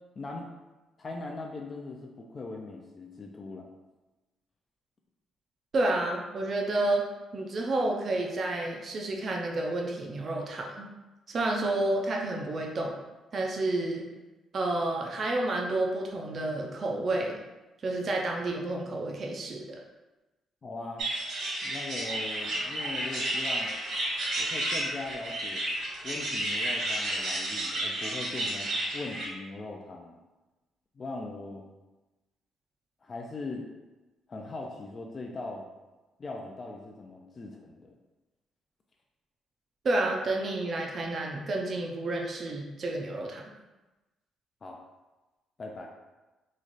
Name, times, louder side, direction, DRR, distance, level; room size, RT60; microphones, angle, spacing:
voice 1, 0.2-0.5 1.0-3.7 20.6-21.0 21.6-23.7 24.4-25.6 26.0-30.2 31.0-31.6 33.0-33.6 34.3-35.6 36.2-38.0 44.6-44.8 45.6-45.9, left 3 dB, 40° left, 0 dB, 0.4 m, -40 dB
voice 2, 5.7-7.0 7.3-10.9 11.3-13.0 13.3-14.1 14.5-17.4 17.8-19.8 39.8-43.4, right 2 dB, 45° right, 0 dB, 0.5 m, -30 dB
sound 1, 21.0-29.3, right 1 dB, 75° right, 1.5 m, -32 dB
3.1 x 2.5 x 3.9 m, 1.1 s
cardioid pair, 90°, 0 cm